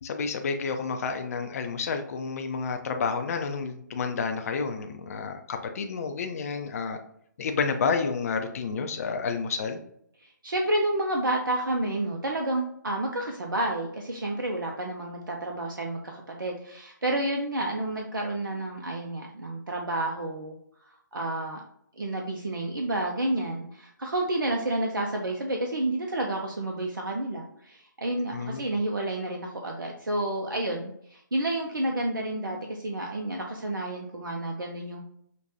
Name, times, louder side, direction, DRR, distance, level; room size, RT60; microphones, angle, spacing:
voice 1, 0.0-7.0 7.4-9.8 28.3-28.6, left 5 dB, 50° left, 5 dB, 0.4 m, -30 dB
voice 2, 10.2-20.6 21.1-21.6 22.0-35.1, right 1 dB, 90° right, 1 dB, 0.6 m, -30 dB
5.1 x 2.2 x 2.7 m, 0.70 s
figure-of-eight pair, 145°, 11 cm